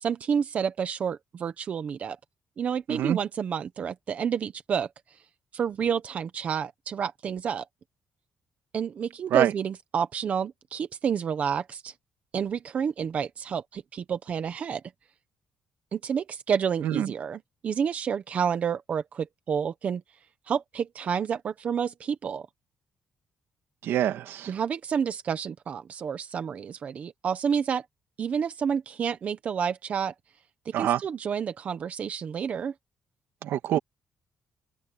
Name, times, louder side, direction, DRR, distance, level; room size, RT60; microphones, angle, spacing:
voice 1, 0.0-2.2 2.6-5.2 5.5-7.7 8.7-11.9 12.3-14.8 15.9-20.0 20.5-22.5 24.5-27.9 28.2-30.1 30.6-32.7, right 7 dB, 35° right, 1.0 m, -29 dB
voice 2, 23.8-24.5 30.7-31.0 33.4-33.8, right 11 dB, 75° right, 1.9 m, -25 dB
open air
cardioid pair, 180°, 4 cm